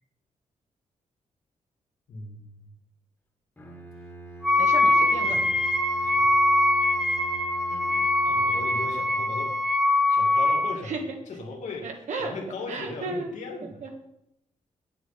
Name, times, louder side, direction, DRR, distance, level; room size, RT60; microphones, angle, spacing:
voice 1, 2.1-2.7 4.8-4.9 5.2-5.5 6.0-6.4 8.2-9.5 10.1-10.9 11.3-11.9 12.2-13.9, left 3 dB, 75° left, 1 dB, 2.2 m, -38 dB
Bowed string instrument, 3.6-9.4, right 2 dB, 15° left, 1.6 m, -43 dB
Wind instrument woodwind instrument, 4.4-10.8, left 2 dB, 5° right, 1.1 m, -23 dB
voice 2, 4.6-5.4 7.7-8.0 10.8-11.0 11.8-12.3 12.7-13.3 13.8-13.9, right 3 dB, 75° right, 3 dB, 1.7 m, -34 dB
8.6 x 8.3 x 5.7 m, 0.81 s
wide cardioid pair, 150°, 12 cm